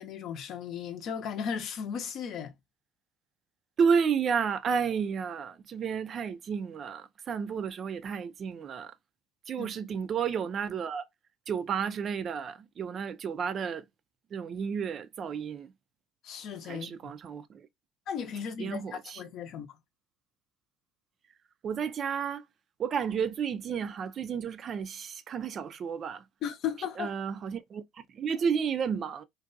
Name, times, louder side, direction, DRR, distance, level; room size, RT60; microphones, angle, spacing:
voice 1, 0.0-2.5 9.6-9.7 16.2-17.1 18.1-19.7 26.4-27.1, left 7 dB, 55° left, 0.5 m, -36 dB
voice 2, 3.8-8.9 9.5-11.1 11.5-13.9 14.3-15.7 16.6-17.7 18.6-19.2 21.6-22.4 22.8-26.2 27.0-27.8 28.1-29.2, right 6 dB, 45° right, 0.3 m, -31 dB
2.5 x 2.2 x 2.5 m
hypercardioid pair, 70°, 0 cm